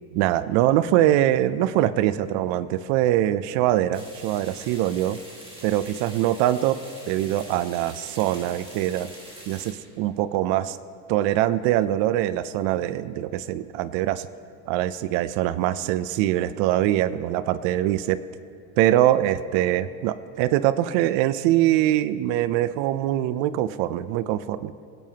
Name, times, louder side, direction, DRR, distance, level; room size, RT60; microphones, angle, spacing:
voice 1, 0.1-5.2 5.6-6.8 7.1-9.1 9.5-10.8 11.1-14.3 14.7-18.2 18.8-24.7, right 13 dB, 80° right, 15 dB, 0.6 m, -23 dB
sound 1, 3.9-9.7, right 1 dB, 10° right, 2.3 m, -44 dB
22.5 x 9.1 x 2.8 m, 2.4 s
cardioid pair, 125°, 43 cm